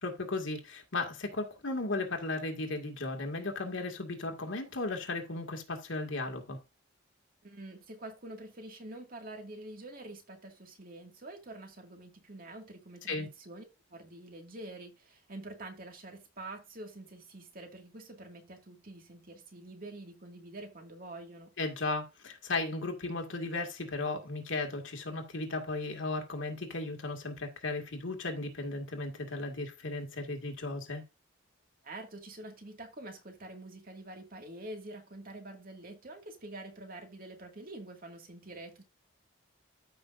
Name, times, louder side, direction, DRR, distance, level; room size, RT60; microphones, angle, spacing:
voice 1, 0.0-6.6 13.1-13.3 21.6-31.0, left 2 dB, 80° left, 2.1 m, -35 dB
voice 2, 7.4-13.6 13.9-21.5 31.8-38.8, right 2 dB, 45° right, 2.1 m, -46 dB
13.5 x 5.8 x 2.6 m
head